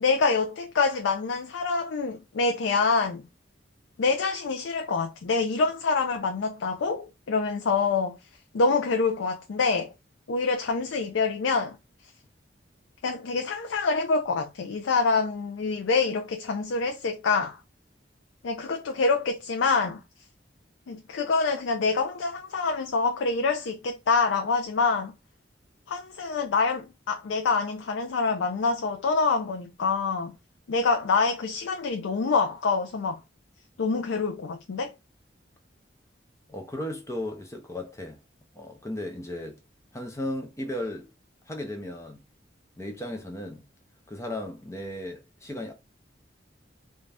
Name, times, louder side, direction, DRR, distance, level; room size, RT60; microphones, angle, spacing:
voice 1, 0.0-3.2 4.0-8.2 8.5-9.9 10.3-11.8 13.0-17.6 18.4-20.0 20.9-25.1 25.9-30.3 30.7-33.2 33.8-34.9, left 4 dB, 90° left, 0.4 m, -26 dB
voice 2, 36.5-38.2 38.5-39.6 39.9-41.1 41.5-42.2 42.8-43.6 44.1-45.7, left 1 dB, 15° left, 0.5 m, -35 dB
2.5 x 2.3 x 3.3 m
head